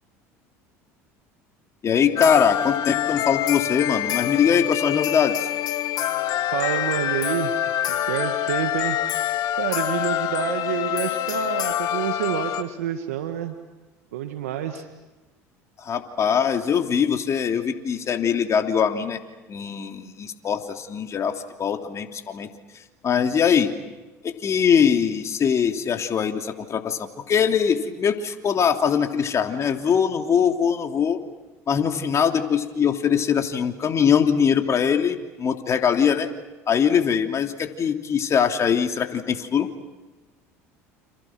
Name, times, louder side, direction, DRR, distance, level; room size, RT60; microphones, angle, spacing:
voice 1, 1.8-5.5 15.8-19.2 19.5-22.5 23.0-23.7 24.2-31.2 31.7-36.3 36.7-39.7, left 7 dB, 40° left, 4 dB, 3.1 m, -22 dB
sound 1, 2.2-12.6, left 11 dB, 55° left, 1.7 m, -26 dB
voice 2, 6.5-9.0 9.6-13.6 14.1-14.9, right 10 dB, 85° right, 6 dB, 1.8 m, -28 dB
30.0 x 28.0 x 6.2 m, 1.2 s
hypercardioid pair, 80°, 8 cm